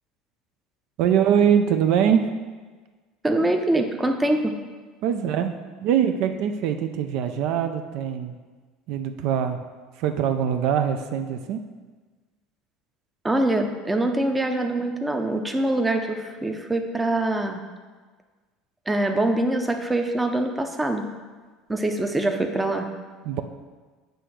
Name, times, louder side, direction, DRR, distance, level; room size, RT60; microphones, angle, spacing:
voice 1, 1.0-2.3 5.0-8.3 8.9-9.6 10.0-11.6 23.2-23.4, right 8 dB, 65° right, 7 dB, 0.5 m, -23 dB
voice 2, 3.2-4.6 13.2-17.6 18.9-21.1 21.7-22.9, right 1 dB, 10° right, 4 dB, 0.6 m, -24 dB
7.8 x 3.4 x 6.3 m, 1.4 s
supercardioid pair, 125°, 0 cm